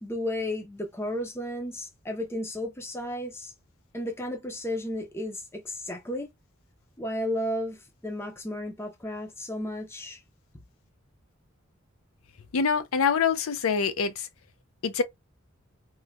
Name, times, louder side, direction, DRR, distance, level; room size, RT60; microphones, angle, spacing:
voice 1, 0.0-3.5 3.9-6.3 7.0-10.2, left 1 dB, 10° left, 0.5 m, -33 dB
voice 2, 12.5-14.3 14.8-15.0, left 6 dB, 85° left, 0.5 m, -25 dB
3.1 x 2.1 x 2.2 m
head